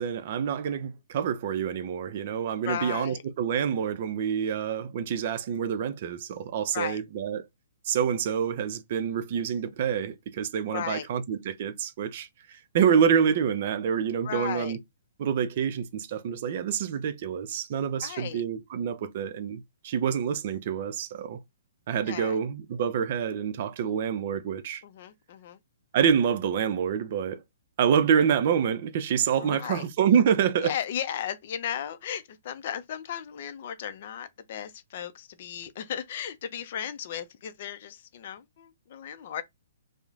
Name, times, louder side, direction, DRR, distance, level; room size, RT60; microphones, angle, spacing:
voice 1, 0.0-7.4 7.9-14.8 15.2-21.4 21.9-24.8 25.9-27.4 27.8-30.7, right 8 dB, 50° right, 0.4 m, -27 dB
voice 2, 2.6-3.2 6.7-7.0 10.6-11.1 14.2-14.8 18.0-18.4 22.1-22.4 24.8-25.6 29.4-29.9 30.6-39.4, left 9 dB, 50° left, 0.4 m, -35 dB
2.9 x 2.0 x 2.4 m
hypercardioid pair, 135°, 0 cm